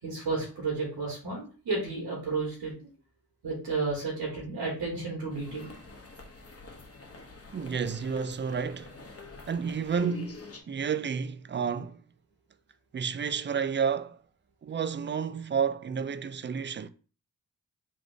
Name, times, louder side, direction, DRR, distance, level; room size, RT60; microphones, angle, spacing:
voice 1, 0.0-2.9 3.4-5.8, right 3 dB, 90° right, 1.5 m, -32 dB
sound 1, 5.3-10.6, left 2 dB, 35° left, 1.0 m, -47 dB
voice 2, 7.5-8.9 9.5-10.4 10.7-12.0 12.9-14.2 14.6-16.9, right 6 dB, 30° right, 0.4 m, -30 dB
3.4 x 2.5 x 3.8 m
supercardioid pair, 40°, 39 cm